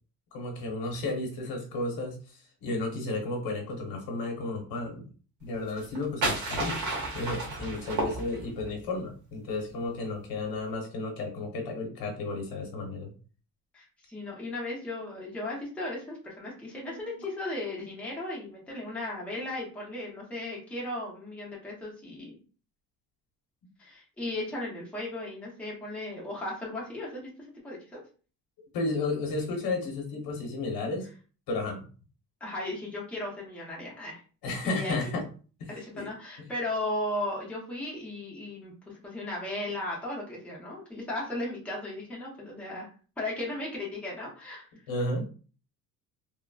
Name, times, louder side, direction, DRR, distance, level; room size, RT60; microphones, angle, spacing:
voice 1, 0.3-5.1 5.4-13.1 16.8-17.1 28.7-31.1 31.5-31.9 34.4-35.2 35.6-36.1 44.9-45.3, left 2 dB, 70° left, 1 dB, 1.0 m, -33 dB
sound 1, 5.7-8.7, right 2 dB, 50° right, 1.0 m, -32 dB
voice 2, 13.7-22.4 23.8-27.3 27.6-28.0 32.4-34.2 34.6-35.1 35.7-42.9 43.2-44.7, left 1 dB, 5° left, -5 dB, 0.7 m, -36 dB
3.4 x 2.1 x 2.3 m, 0.38 s
cardioid pair, 175°, 37 cm